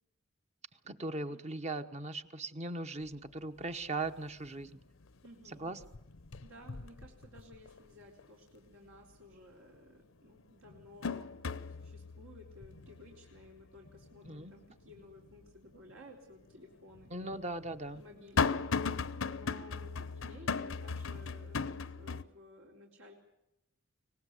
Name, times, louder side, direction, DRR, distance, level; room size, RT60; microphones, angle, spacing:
voice 1, 0.8-4.8 5.5-5.8 14.2-14.5 17.1-18.0, right 2 dB, 35° right, 8 dB, 1.1 m, -39 dB
sound 1, 3.1-3.2 3.6-4.1 4.5-5.3 5.5-7.8 8.2-8.3 9.7-9.8 10.4-15.5 15.9-16.0 16.9-22.2, left 5 dB, 70° left, 0.8 m, -37 dB
voice 2, 5.2-5.7 6.4-11.4 11.8-17.1 17.9-18.7 19.2-23.1, left 1 dB, 75° right, -1 dB, 4.0 m, -55 dB
24.0 x 19.0 x 8.2 m, 0.82 s
head